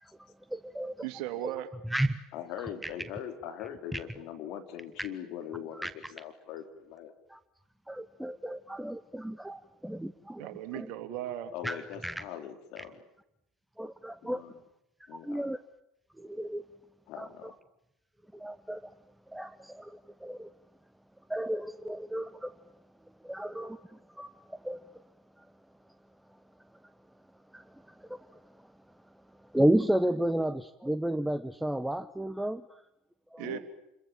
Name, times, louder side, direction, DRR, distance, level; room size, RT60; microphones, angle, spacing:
voice 1, 0.0-1.1 1.8-2.2 2.6-2.9 3.9-4.0 5.0-5.1 5.7-6.1 7.3-7.4 7.9-10.5 10.7-10.9 11.6-12.2 12.8-12.9 13.8-14.4 15.0-15.6 16.2-16.6 17.2-17.5 18.3-18.9 19.3-20.5 21.3-22.7 23.2-25.0 25.4-25.5 27.5-28.7 29.4-32.8 33.3-33.4, right 1 dB, 5° right, 13 dB, 1.1 m, -33 dB
voice 2, 1.0-1.7 10.4-11.5 33.4-33.6, right 13 dB, 60° right, 9 dB, 2.9 m, -36 dB
voice 3, 2.3-7.1 11.5-13.0 14.2-14.5 15.1-15.5 17.1-17.5 33.4-33.6, left 9 dB, 60° left, 6 dB, 4.3 m, -41 dB
29.0 x 22.5 x 7.5 m, 0.84 s
hypercardioid pair, 70°, 0 cm